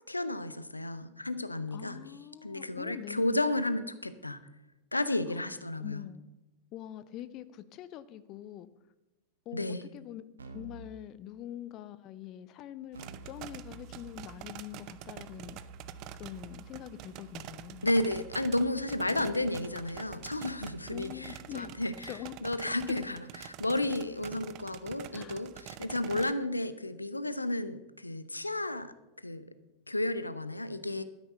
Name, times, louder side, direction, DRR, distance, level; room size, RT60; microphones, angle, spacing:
voice 1, 0.1-2.0 2.4-4.4 4.9-6.0 9.5-9.8 17.8-21.9 22.4-28.9 29.2-29.4 29.9-31.0, left 1 dB, 85° left, 0.7 m, -32 dB
voice 2, 1.7-3.5 5.3-6.2 6.7-8.7 9.5-10.2 10.5-15.6 16.2-17.9 20.9-22.3 22.9-23.0 25.1-25.5, left 12 dB, 35° left, 0.6 m, -44 dB
Keyboard (musical), 10.4-10.9 12.9-21.8, right 3 dB, 75° right, 1.4 m, -51 dB
sound 1, 12.9-26.3, right 13 dB, 40° right, 0.6 m, -47 dB
12.5 x 10.0 x 5.6 m
figure-of-eight pair, 90°, 0 cm